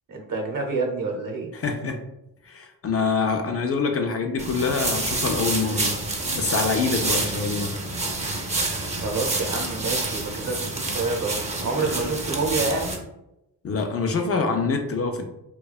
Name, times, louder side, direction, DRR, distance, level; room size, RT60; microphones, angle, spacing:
voice 1, 0.1-1.5 8.9-10.6 10.8-13.0, right 3 dB, 55° right, 1 dB, 0.8 m, -28 dB
voice 2, 1.5-2.0 2.4-5.9 6.3-7.7 13.6-15.3, left 4 dB, 40° left, 5 dB, 0.4 m, -25 dB
sound 1, 4.4-13.0, right 2 dB, 20° right, 0.5 m, -28 dB
2.6 x 2.2 x 2.2 m, 0.87 s
cardioid pair, 65°, 40 cm